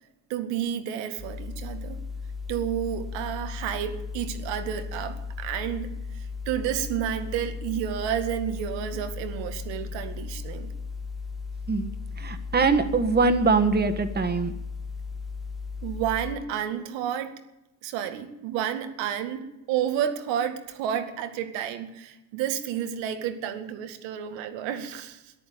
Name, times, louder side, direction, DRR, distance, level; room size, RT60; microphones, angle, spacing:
voice 1, 0.3-2.0 2.5-10.7 15.8-17.4 17.8-25.3, right 9 dB, 90° right, 8 dB, 2.1 m, -31 dB
sound 1, 1.2-16.3, left 4 dB, ahead, 0.9 m, -36 dB
voice 2, 11.7-14.5, right 4 dB, 25° right, 7 dB, 1.6 m, -23 dB
14.0 x 11.0 x 9.3 m, 0.92 s
cardioid pair, 145°, 42 cm